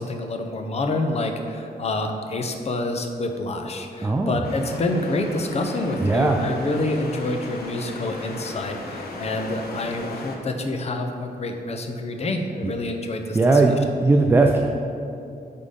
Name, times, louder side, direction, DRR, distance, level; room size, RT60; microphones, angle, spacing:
voice 1, 0.0-13.6, left 2 dB, 40° left, 5 dB, 0.7 m, -27 dB
voice 2, 4.0-4.4 6.0-6.4 12.6-12.7 13.3-13.7 14.0-14.6, right 3 dB, 15° right, 2 dB, 0.4 m, -18 dB
sound 1, 4.4-10.4, left 2 dB, 80° left, 0.9 m, -37 dB
8.0 x 3.7 x 5.1 m, 2.6 s
wide cardioid pair, 125°, 16 cm